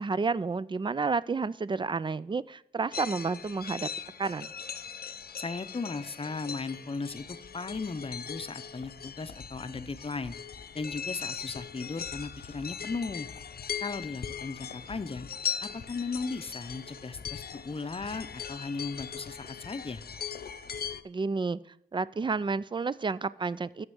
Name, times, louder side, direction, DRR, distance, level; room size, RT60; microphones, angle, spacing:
voice 1, 0.0-3.9 4.2-4.5 21.0-21.6 21.9-23.9, right 4 dB, 30° right, 18 dB, 0.3 m, -30 dB
sound 1, 2.9-21.0, left 7 dB, 75° left, 0.6 m, -40 dB
voice 2, 5.4-10.4 10.7-13.3 13.8-15.3 15.6-20.0, left 4 dB, 35° left, 12 dB, 0.6 m, -36 dB
7.2 x 6.4 x 7.7 m, 0.73 s
wide cardioid pair, 95°, 16 cm